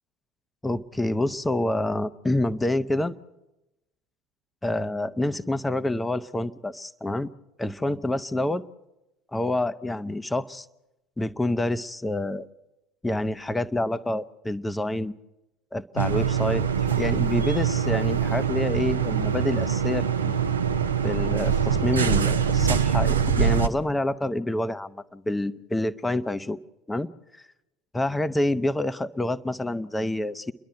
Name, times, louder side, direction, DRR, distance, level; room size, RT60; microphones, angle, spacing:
voice 1, 0.6-3.2 4.6-7.3 7.6-8.6 9.3-10.7 11.2-12.5 13.0-15.1 15.7-16.7 17.0-20.3 21.0-26.6 26.9-27.1 27.9-30.5, left 1 dB, 10° left, 14 dB, 0.8 m, -27 dB
sound 1, 16.0-23.7, right 7 dB, 85° right, 0.9 m, -24 dB
30.0 x 11.5 x 7.8 m, 0.94 s
figure-of-eight pair, 65°, 0 cm